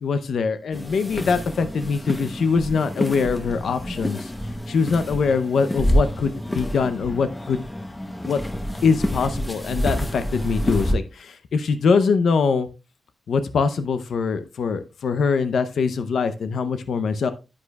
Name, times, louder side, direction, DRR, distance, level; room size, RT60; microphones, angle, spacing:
voice 1, 0.0-4.3 4.7-7.6 8.2-8.4 8.8-12.7 13.3-17.3, left 5 dB, 75° left, 11 dB, 0.6 m, -23 dB
sound 1, 0.7-11.0, equal, 15° left, 0.8 m, -28 dB
9.9 x 8.4 x 2.3 m, 0.28 s
wide cardioid pair, 160°, 0 cm